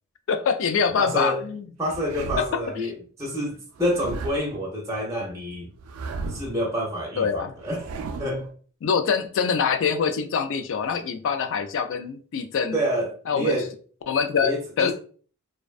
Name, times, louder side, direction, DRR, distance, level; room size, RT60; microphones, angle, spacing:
voice 1, 0.3-1.7 2.8-2.9 7.2-7.5 8.8-12.8 13.3-13.6 14.1-14.9, left 6 dB, 60° left, 0.3 m, -24 dB
voice 2, 1.0-1.4 1.8-5.7 6.3-7.8 8.1-8.5 12.7-13.7 14.4-14.9, equal, 15° right, 0.5 m, -28 dB
sound 1, 1.8-2.7 3.8-4.6 5.8-6.6 7.6-8.5, right 3 dB, 75° right, 0.3 m, -35 dB
2.5 x 2.1 x 2.3 m
head